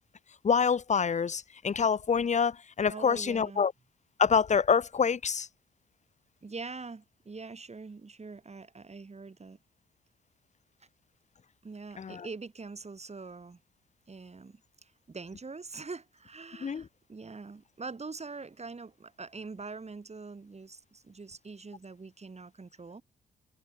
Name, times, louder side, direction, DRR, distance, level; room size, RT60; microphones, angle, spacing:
voice 1, 0.4-3.7 4.2-5.5 12.0-12.2 16.6-16.8, left 6 dB, 35° left, 0.7 m, -26 dB
voice 2, 2.9-3.6 6.4-9.6 11.6-13.6 14.1-23.0, right 4 dB, 35° right, 3.7 m, -44 dB
supercardioid pair, 55°, 20 cm